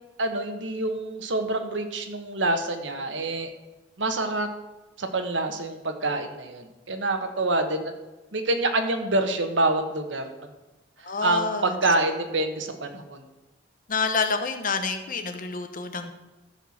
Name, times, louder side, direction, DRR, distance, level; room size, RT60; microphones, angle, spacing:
voice 1, 0.2-3.5 4.0-4.5 5.0-7.9 8.3-10.3 11.2-13.2, right 2 dB, 85° right, 6 dB, 1.4 m, -26 dB
voice 2, 11.0-11.7 13.9-16.1, left 4 dB, 45° left, 7 dB, 1.1 m, -28 dB
14.0 x 4.7 x 7.3 m, 1.1 s
head